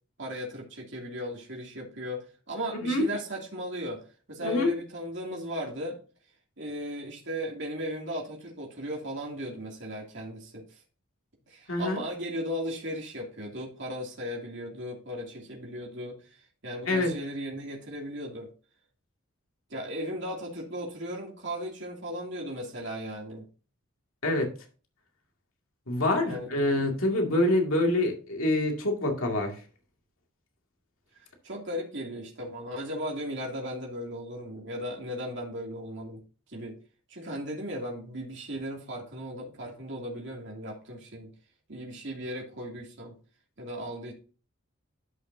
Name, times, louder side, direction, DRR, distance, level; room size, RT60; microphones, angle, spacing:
voice 1, 0.2-4.0 4.3-6.0 6.6-10.8 11.5-18.5 19.7-23.5 26.2-26.8 31.4-36.2 36.5-36.7 37.1-41.3 41.7-43.1 43.6-44.1, equal, 55° right, -1 dB, 2.7 m, -36 dB
voice 2, 2.7-3.0 4.4-4.7 11.7-12.0 16.9-17.1 24.2-24.5 25.9-29.6, left 1 dB, 75° left, 2 dB, 2.2 m, -26 dB
12.5 x 5.8 x 2.7 m, 0.36 s
head